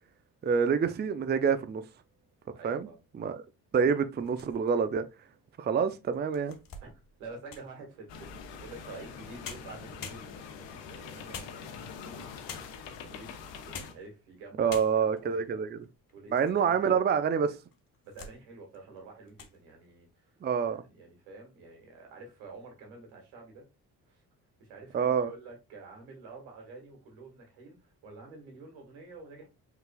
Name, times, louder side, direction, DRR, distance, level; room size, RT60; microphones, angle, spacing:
voice 1, 0.4-1.8 2.6-2.9 3.2-3.4 3.7-5.0 5.6-6.6 14.6-15.8 16.3-17.5 20.4-20.8 24.9-25.3, right 6 dB, 25° right, 0.5 m, -27 dB
voice 2, 2.5-3.0 6.8-12.3 13.1-13.3 13.6-15.7 16.1-17.0 18.0-20.3 20.6-23.6 24.1-24.2 24.6-29.5, right 3 dB, 85° right, 1.9 m, -49 dB
sound 1, 4.1-4.9 5.5-5.6 6.1-7.8 9.1-9.2 9.4-10.7 11.3-12.0 12.5-12.9 13.5-14.1 14.4-14.5 14.7-15.3 15.8-16.6 16.9-17.0 17.7-18.4 18.7-19.0 19.3-19.6, left 5 dB, 45° left, 1.1 m, -46 dB
sound 2, 8.1-13.9, left 6 dB, 70° left, 0.9 m, -44 dB
5.4 x 4.0 x 2.3 m
hypercardioid pair, 55°, 46 cm